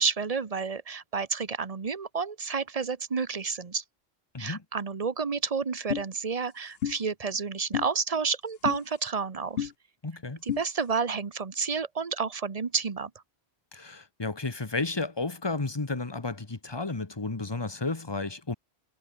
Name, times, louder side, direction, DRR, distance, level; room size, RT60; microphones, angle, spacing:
voice 1, 0.0-3.8 4.4-9.7 10.4-13.1, right 5 dB, 35° right, 1.1 m, -30 dB
sound 1, 5.9-6.1 6.8-7.0 7.7-7.9 8.7-8.8 9.6-9.7 10.5-10.6, left 9 dB, 70° left, 0.9 m, -29 dB
voice 2, 10.0-10.4 13.7-18.5, left 3 dB, 25° left, 1.3 m, -32 dB
omnidirectional pair, 1.1 m